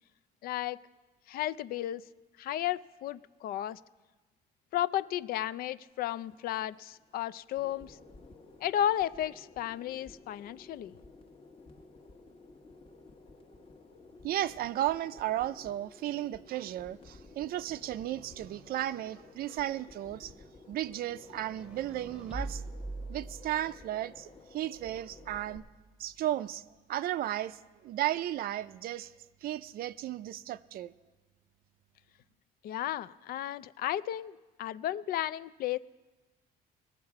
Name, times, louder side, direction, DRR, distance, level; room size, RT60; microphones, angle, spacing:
voice 1, 0.4-0.8 1.3-2.0 2.4-3.8 4.7-8.0 8.6-10.9 32.6-35.8, left 12 dB, 60° left, 16 dB, 0.4 m, -33 dB
sound 1, 5.9-25.6, left 3 dB, 35° left, 1.1 m, -55 dB
voice 2, 14.2-20.3 20.7-22.6 23.1-25.6 26.0-26.6 26.9-29.1 29.4-30.9, right 13 dB, 60° right, 16 dB, 0.5 m, -34 dB
sound 2, 21.1-23.9 24.7-25.7, right 2 dB, 5° right, 0.9 m, -43 dB
20.0 x 7.3 x 4.8 m, 1.2 s
cardioid pair, 110°, 17 cm